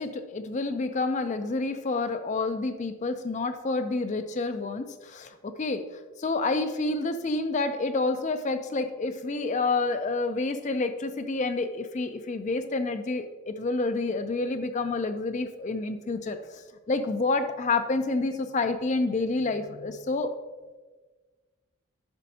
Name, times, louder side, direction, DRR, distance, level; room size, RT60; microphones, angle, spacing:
voice 1, 0.0-5.8 6.2-16.6 16.9-20.3, left 3 dB, 35° left, 9 dB, 0.4 m, -28 dB
10.5 x 6.2 x 2.8 m, 1.3 s
head